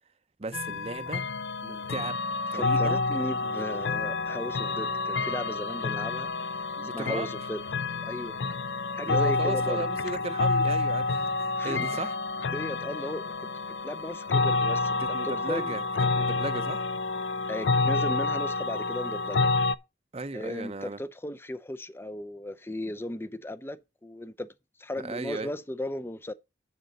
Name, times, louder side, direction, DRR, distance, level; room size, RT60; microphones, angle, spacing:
voice 1, 0.4-1.2 1.6-2.2 2.5-3.8 6.8-7.3 9.1-12.1 15.0-16.9 20.1-21.0 25.0-25.5, right 3 dB, 35° right, 0.6 m, -36 dB
sound 1, 0.5-19.8, left 3 dB, 80° left, 0.5 m, -29 dB
voice 2, 2.5-6.3 6.9-7.6 8.0-8.4 9.0-9.9 11.6-12.0 12.5-13.5 13.8-15.8 17.5-19.5 20.3-24.5 24.8-26.3, left 1 dB, 15° left, 0.5 m, -36 dB
7.5 x 6.6 x 5.1 m
head